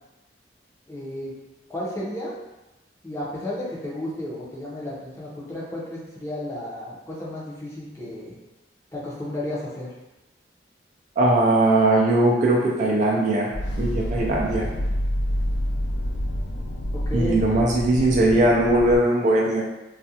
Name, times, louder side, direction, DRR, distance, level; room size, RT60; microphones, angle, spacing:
voice 1, 0.9-1.3 1.7-2.3 3.0-8.3 8.9-9.9 16.9-17.4, left 1 dB, 15° left, -7 dB, 0.6 m, -32 dB
voice 2, 11.2-13.5 13.8-14.7 17.1-19.7, right 1 dB, 45° right, -2 dB, 0.4 m, -20 dB
sound 1, 13.5-19.0, equal, 85° left, 0.4 m, -28 dB
2.3 x 2.1 x 2.7 m, 0.99 s
head